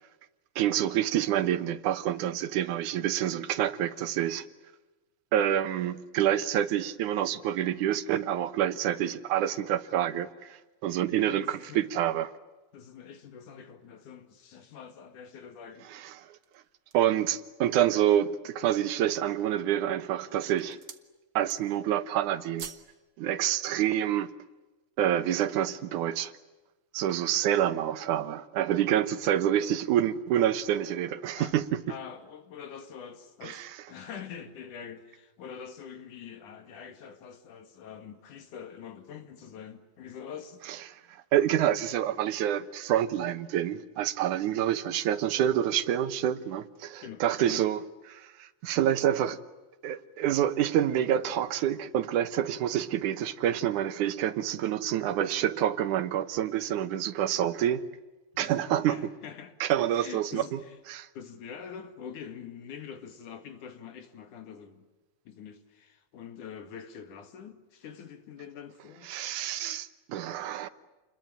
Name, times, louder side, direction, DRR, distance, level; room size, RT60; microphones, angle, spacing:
voice 1, 0.6-4.4 5.3-12.3 15.9-16.4 16.9-20.8 21.4-22.7 23.2-24.3 25.0-26.3 26.9-31.8 33.4-33.7 40.9-41.0 41.3-47.8 48.1-49.4 49.8-57.9 58.4-59.0 59.6-60.6 60.9-61.1 69.1-70.7, right 11 dB, 80° right, 2.6 m, -27 dB
voice 2, 11.1-11.9 12.7-15.9 29.3-29.4 31.4-31.6 31.9-40.6 44.5-44.7 47.0-47.6 58.3-60.8 61.2-64.9 65.3-69.1, left 7 dB, 85° left, 3.6 m, -45 dB
sound 1, 16.2-17.2 17.8-17.9 18.4-18.9 19.6-20.0 20.3-21.1 21.4-21.9 22.2-22.9 23.3-23.4, right 7 dB, 45° right, 1.6 m, -46 dB
29.0 x 22.0 x 9.0 m
omnidirectional pair, 3.5 m